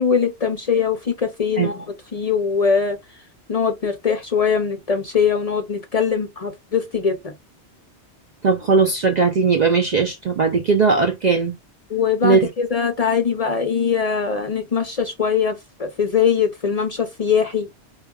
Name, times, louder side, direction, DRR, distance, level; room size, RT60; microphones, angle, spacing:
voice 1, 0.0-1.8 2.1-3.0 3.5-7.3 11.9-17.7, left 6 dB, 45° left, 0.5 m, -21 dB
voice 2, 8.4-11.5 12.2-12.4, right 4 dB, 60° right, 0.5 m, -18 dB
4.7 x 2.3 x 2.3 m
omnidirectional pair, 1.2 m